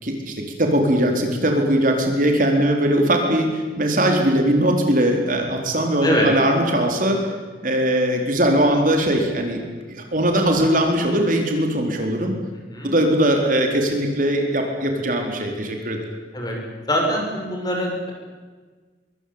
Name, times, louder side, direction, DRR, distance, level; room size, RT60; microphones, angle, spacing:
voice 1, 0.0-7.2 7.6-9.6 9.9-12.3 12.8-16.1, right 1 dB, 45° right, 3 dB, 4.3 m, -20 dB
voice 2, 16.9-18.1, equal, 20° left, 0 dB, 7.4 m, -23 dB
25.5 x 23.5 x 8.8 m, 1.4 s
head